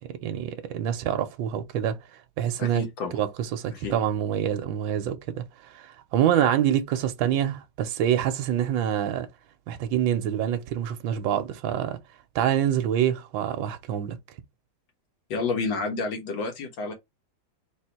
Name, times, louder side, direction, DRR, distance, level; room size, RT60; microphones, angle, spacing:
voice 1, 0.2-2.0 2.4-2.9 3.1-9.3 9.7-12.0 12.3-14.2, right 10 dB, 70° right, 1.4 m, -26 dB
voice 2, 2.6-3.1 3.7-3.9 15.3-16.9, left 4 dB, 65° left, 1.8 m, -30 dB
4.0 x 2.7 x 4.3 m
omnidirectional pair, 2.3 m